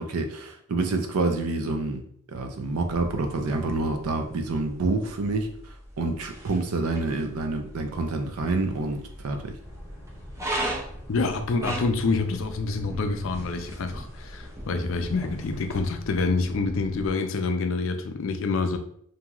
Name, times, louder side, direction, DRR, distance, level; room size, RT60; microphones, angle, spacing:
voice 1, 0.0-2.0 2.3-5.5 6.0-9.5, right 3 dB, 75° right, 5 dB, 0.5 m, -27 dB
sound 1, 2.7-15.8, right 1 dB, 15° right, 0.4 m, -39 dB
Boat Water vehicle, 9.6-17.1, equal, 10° left, 0.9 m, -43 dB
voice 2, 11.1-18.8, left 3 dB, 60° left, 6 dB, 0.4 m, -27 dB
2.9 x 2.6 x 2.3 m, 0.65 s
head